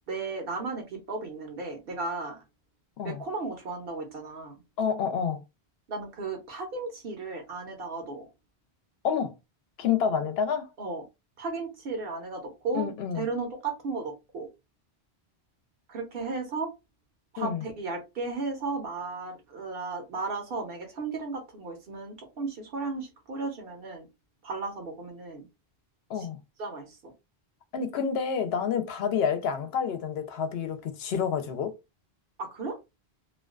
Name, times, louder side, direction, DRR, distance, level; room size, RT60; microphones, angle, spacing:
voice 1, 0.1-2.4 3.0-4.5 5.9-8.3 10.8-11.0 11.4-14.5 15.9-16.7 17.3-24.1 24.4-25.5 26.1-26.3 26.6-27.1 32.4-32.8, right 3 dB, 65° right, 0.9 m, -35 dB
voice 2, 4.8-5.4 9.0-9.3 9.8-10.7 12.7-13.3 17.4-17.6 26.1-26.4 27.7-31.8, left 7 dB, 75° left, 0.8 m, -28 dB
2.4 x 2.2 x 2.3 m
omnidirectional pair, 1.1 m